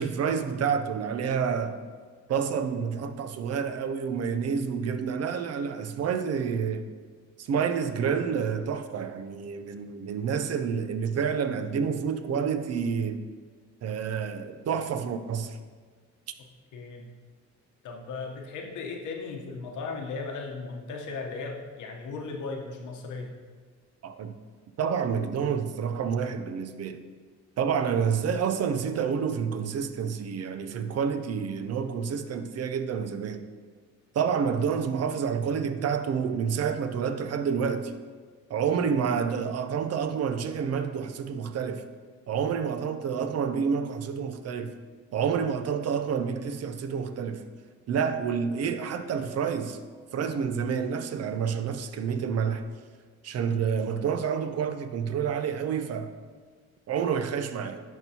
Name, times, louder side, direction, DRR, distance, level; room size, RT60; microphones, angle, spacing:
voice 1, 0.0-1.8 2.3-6.9 7.4-13.3 13.8-15.6 24.0-24.3 24.8-27.0 27.6-33.4 34.1-37.9 38.5-41.8 42.3-44.7 45.1-47.4 47.9-49.8 50.1-52.7 53.2-56.1 56.9-57.8, right 6 dB, 55° right, 0.6 m, -28 dB
voice 2, 16.7-17.1 17.8-23.3, left 4 dB, 80° left, 1.0 m, -36 dB
11.0 x 4.5 x 2.9 m
cardioid pair, 90°, 30 cm